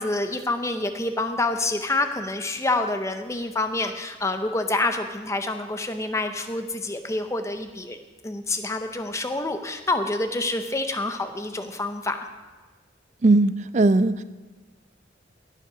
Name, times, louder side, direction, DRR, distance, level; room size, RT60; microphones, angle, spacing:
voice 1, 0.0-8.0 8.2-12.2, left 2 dB, 15° left, 7 dB, 0.7 m, -27 dB
voice 2, 13.2-14.2, right 2 dB, 35° right, 14 dB, 0.4 m, -19 dB
17.0 x 7.4 x 5.0 m, 1.3 s
head